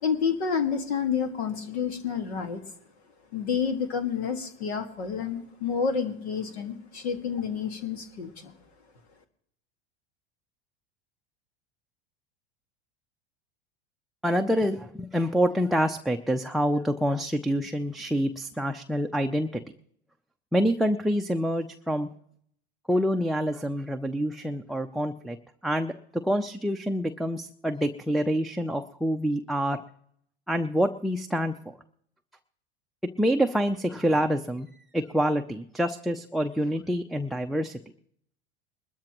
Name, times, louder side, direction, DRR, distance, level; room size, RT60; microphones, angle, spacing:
voice 1, 0.0-2.6 3.3-8.5, left 6 dB, 85° left, 7 dB, 1.9 m, -29 dB
voice 2, 14.2-19.6 20.5-22.1 22.9-25.4 25.6-29.8 30.5-31.7 33.2-34.7 34.9-37.8, equal, ahead, 4 dB, 0.4 m, -27 dB
21.0 x 13.0 x 3.0 m, 0.68 s
hypercardioid pair, 100°, 32 cm